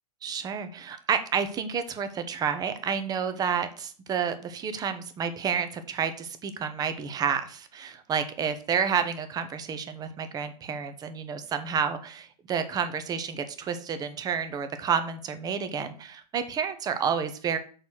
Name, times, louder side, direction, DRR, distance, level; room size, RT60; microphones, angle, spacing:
voice 1, 0.2-17.6, right 7 dB, 20° right, 10 dB, 0.9 m, -30 dB
6.5 x 4.2 x 6.3 m, 0.41 s
figure-of-eight pair, 110°, 20 cm